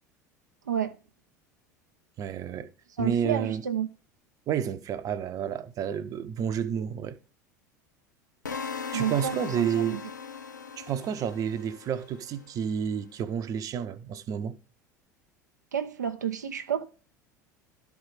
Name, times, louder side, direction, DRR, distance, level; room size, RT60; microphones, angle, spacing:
voice 1, 0.7-1.0 3.0-3.9 8.9-10.0 15.7-16.8, right 9 dB, 75° right, 0.6 m, -30 dB
voice 2, 2.2-2.7 3.0-3.6 4.5-7.2 8.9-10.0 10.8-14.6, right 8 dB, 35° right, 0.9 m, -30 dB
sound 1, 8.5-12.5, left 6 dB, 80° left, 0.5 m, -39 dB
12.0 x 4.8 x 5.6 m
figure-of-eight pair, 75°, 10 cm